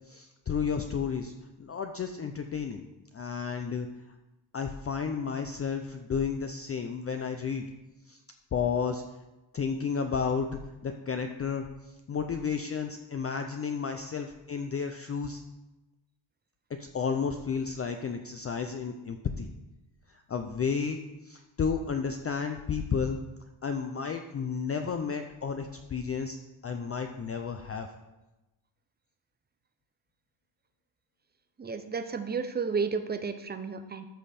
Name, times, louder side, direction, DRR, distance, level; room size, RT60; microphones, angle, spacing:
voice 1, 0.1-1.3 1.6-2.8 3.1-3.9 4.5-7.7 8.1-8.2 8.5-9.0 9.5-15.4 16.9-19.5 20.1-23.2 23.6-26.4 26.6-27.9, left 6 dB, 30° left, 5 dB, 0.5 m, -32 dB
voice 2, 31.6-34.0, right 5 dB, 20° right, 9 dB, 0.6 m, -32 dB
13.5 x 5.2 x 4.2 m, 1.0 s
cardioid pair, 140°, 49 cm